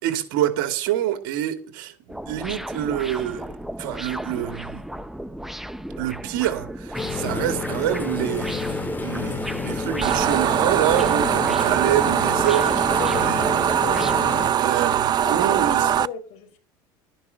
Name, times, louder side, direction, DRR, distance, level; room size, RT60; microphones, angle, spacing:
voice 1, 0.0-3.5 3.8-4.8 6.0-12.7 13.2-13.4 14.6-15.9, right 12 dB, 75° right, 2.4 m, -26 dB
sound 1, 2.1-14.1, right 1 dB, 5° right, 0.8 m, -35 dB
sound 2, 6.9-14.5, left 3 dB, 15° left, 2.1 m, -30 dB
sound 3, 10.0-16.1, right 10 dB, 40° right, 0.6 m, -21 dB
voice 2, 13.0-13.4 13.8-14.3 15.1-16.6, left 7 dB, 65° left, 3.9 m, -35 dB
12.0 x 10.5 x 6.6 m
supercardioid pair, 95°, 11 cm